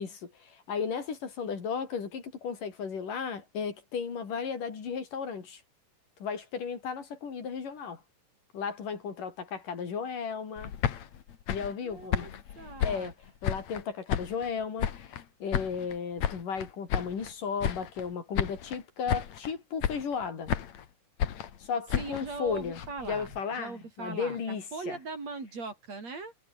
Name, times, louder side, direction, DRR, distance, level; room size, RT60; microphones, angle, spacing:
voice 1, 0.0-5.6 6.2-8.0 8.5-10.7 11.5-12.3 12.8-13.1 13.4-20.5 21.6-22.8 23.1-25.0, left 6 dB, 80° left, 5.5 m, -35 dB
sound 1, 10.6-13.8 14.1-15.2 15.5-17.3 17.6-18.1 18.3-18.8 19.1-19.5 19.8-20.9 21.2-23.4, left 9 dB, 60° left, 2.9 m, -33 dB
voice 2, 11.8-13.1 22.0-26.3, right 3 dB, 55° right, 6.9 m, -40 dB
omnidirectional pair, 3.7 m